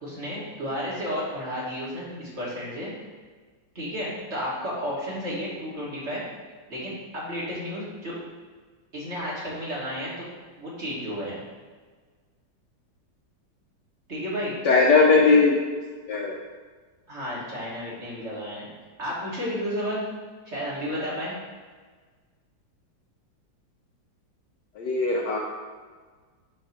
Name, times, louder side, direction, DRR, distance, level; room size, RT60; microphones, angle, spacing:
voice 1, 0.0-2.9 3.7-6.2 6.7-8.1 8.9-10.2 10.6-11.4 14.1-14.6 14.9-15.0 17.1-18.7 19.0-20.0 20.4-21.3, equal, 35° right, -7 dB, 1.7 m, -32 dB
voice 2, 14.6-15.6 16.1-16.4 24.8-25.4, left 4 dB, 70° left, 0 dB, 1.1 m, -19 dB
7.1 x 2.9 x 5.8 m, 1.5 s
omnidirectional pair, 2.2 m